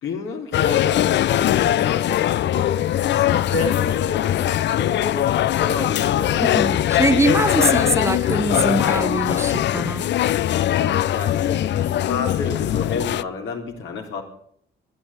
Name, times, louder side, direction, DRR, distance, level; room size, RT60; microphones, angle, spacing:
voice 1, 0.0-6.4 10.6-14.2, left 4 dB, 80° left, 3.6 m, -30 dB
sound 1, 0.5-13.2, left 12 dB, 65° left, 0.5 m, -21 dB
voice 2, 6.4-10.1, right 2 dB, 15° right, 0.7 m, -22 dB
12.5 x 10.5 x 8.6 m
cardioid pair, 90°, 20 cm